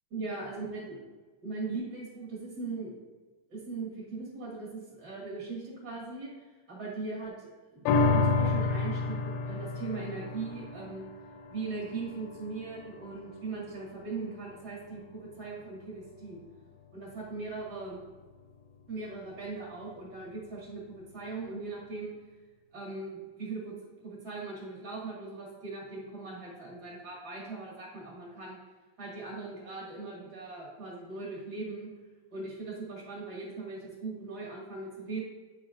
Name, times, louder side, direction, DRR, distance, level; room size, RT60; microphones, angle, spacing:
voice 1, 0.1-1.0 1.4-2.9 3.5-11.1 11.5-16.4 16.9-18.0 18.9-22.1 22.7-23.7 24.0-28.6 29.0-31.9 32.3-35.2, right 3 dB, 35° right, -5 dB, 1.8 m, -39 dB
sound 1, 7.9-14.5 15.0-15.1, left 4 dB, 85° left, 2.5 m, -31 dB
9.4 x 4.8 x 2.5 m, 1.3 s
omnidirectional pair, 4.3 m